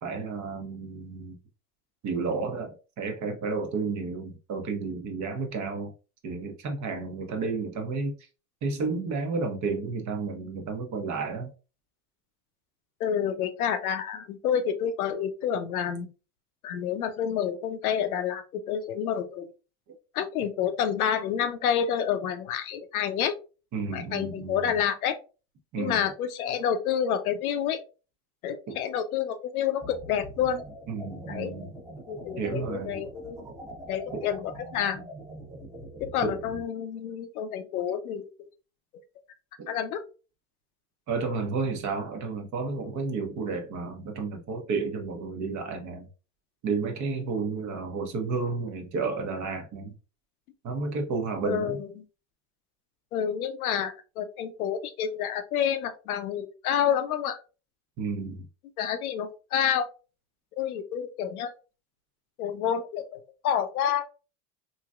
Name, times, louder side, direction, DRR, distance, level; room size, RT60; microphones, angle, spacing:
voice 1, 0.0-1.4 2.0-5.9 6.2-8.2 8.6-11.5 23.7-24.7 25.7-26.0 28.7-28.8 30.9-31.8 32.4-33.0 34.1-34.3 36.2-36.4 39.6-39.8 41.1-46.1 46.6-50.0 50.6-51.8 58.0-58.5, right 4 dB, 40° right, 0.9 m, -31 dB
voice 2, 13.0-16.1 16.6-19.5 20.1-23.3 23.9-25.2 25.8-27.8 28.4-30.6 31.3-31.5 32.1-33.5 33.9-35.1 36.1-38.5 39.7-40.0 51.4-51.9 53.1-57.4 58.8-59.9 60.6-61.5 62.4-64.0, left 8 dB, 90° left, 0.6 m, -29 dB
sound 1, 29.8-36.6, right 1 dB, 10° right, 0.8 m, -43 dB
3.0 x 2.6 x 2.3 m
hypercardioid pair, 85°, 42 cm